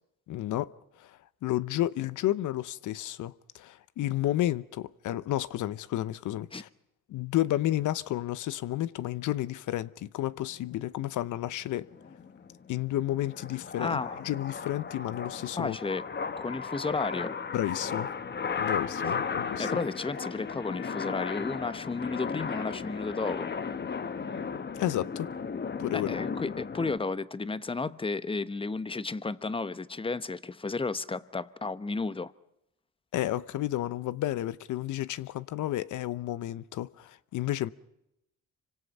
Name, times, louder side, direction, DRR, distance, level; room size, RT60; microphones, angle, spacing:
voice 1, 0.3-0.7 1.0-1.1 1.4-6.7 7.1-11.9 12.7-15.8 17.5-18.1 18.6-19.7 24.8-25.3 25.8-26.2 33.1-37.7, left 14 dB, 80° left, 0.9 m, -31 dB
sound 1, 11.8-27.0, left 6 dB, 35° left, 1.3 m, -35 dB
voice 2, 13.8-14.2 15.6-16.0 16.4-17.4 19.1-19.2 19.6-23.5 25.9-32.3, left 3 dB, 20° left, 1.0 m, -33 dB
27.0 x 25.0 x 5.5 m
cardioid pair, 90°, 30 cm